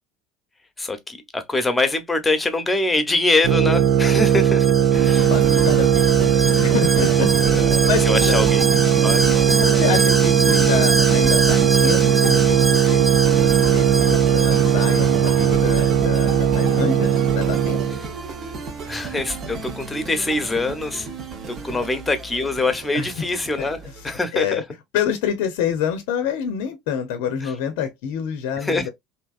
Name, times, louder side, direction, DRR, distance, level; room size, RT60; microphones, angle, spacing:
voice 1, 0.8-5.3 7.3-8.7 9.0-9.3 18.9-21.1 21.5-24.6 27.4-27.5 28.6-28.9, left 2 dB, 15° left, 0.9 m, -24 dB
sound 1, 3.4-18.0, right 9 dB, 70° right, 0.5 m, -18 dB
Alarm, 3.7-17.2 17.5-17.6, right 1 dB, 10° right, 0.7 m, -27 dB
sound 2, 4.9-24.2, right 3 dB, 45° right, 0.9 m, -31 dB
voice 2, 5.1-8.4 9.3-13.0 13.4-17.8 21.7-21.8 22.9-23.0 23.6-23.7 24.3-24.6 24.9-28.9, left 8 dB, 65° left, 0.6 m, -27 dB
3.3 x 2.8 x 2.4 m
hypercardioid pair, 70°, 0 cm